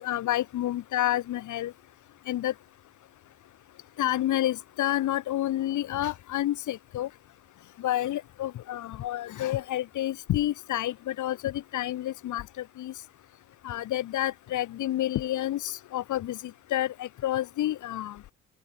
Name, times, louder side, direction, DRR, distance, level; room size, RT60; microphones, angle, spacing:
voice 1, 0.0-1.7 2.3-2.5 4.0-7.1 7.8-12.4 12.8-12.9 13.6-16.4 16.7-18.2, left 13 dB, 80° left, 2.8 m, -29 dB
open air
cardioid pair, 90°, 30 cm